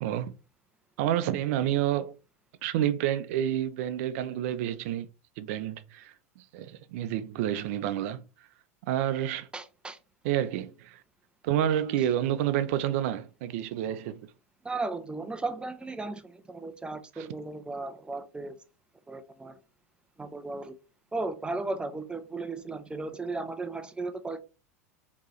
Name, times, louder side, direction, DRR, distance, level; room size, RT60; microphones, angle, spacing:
voice 1, 0.0-0.3 1.0-2.1 2.6-5.1 5.4-8.2 8.9-9.5 10.2-11.0 11.4-14.2 17.2-17.3, right 11 dB, 65° right, 0.5 m, -29 dB
voice 2, 9.5-10.0 14.6-18.5 19.1-19.6 20.2-20.7 21.1-24.4, right 3 dB, 10° right, 0.6 m, -35 dB
4.4 x 3.0 x 3.0 m
hypercardioid pair, 100°, 8 cm